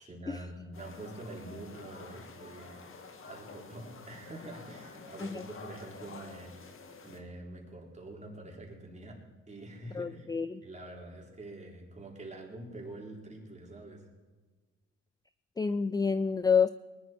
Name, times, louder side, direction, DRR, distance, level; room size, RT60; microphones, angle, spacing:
voice 1, 0.0-3.0 3.2-6.7 7.0-9.2 9.5-10.3 10.6-14.1, right 2 dB, 25° right, -1 dB, 4.0 m, -45 dB
sound 1, 0.7-7.2, left 4 dB, 45° left, 1.8 m, -49 dB
voice 2, 10.0-10.6 15.6-16.7, left 6 dB, 15° left, 14 dB, 0.4 m, -28 dB
20.5 x 11.0 x 4.6 m, 1.3 s
cardioid pair, 90°, 30 cm